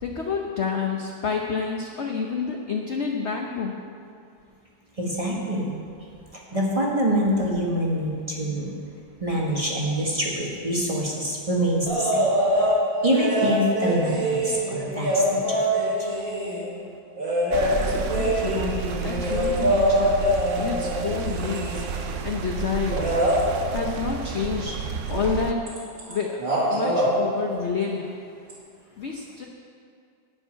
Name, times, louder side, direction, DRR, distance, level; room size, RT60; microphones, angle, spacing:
voice 1, 0.0-3.8 17.8-21.9 22.2-23.2 23.7-24.8 25.1-25.6 26.1-26.4 26.7-28.2 29.0-29.5, left 5 dB, 55° left, 1 dB, 0.8 m, -29 dB
voice 2, 5.0-5.7 6.5-8.7 9.2-12.3 13.0-15.8, equal, 20° right, -3 dB, 1.3 m, -25 dB
sound 1, 11.9-12.8 13.1-16.7 17.2-22.0 22.9-23.4 25.2-25.4 25.7-26.1 26.4-27.1 28.5-28.6, equal, 80° right, 3.1 m, -24 dB
sound 2, 17.5-25.5, right 6 dB, 65° right, 0.8 m, -31 dB
11.5 x 5.4 x 8.8 m, 2.3 s
omnidirectional pair, 2.0 m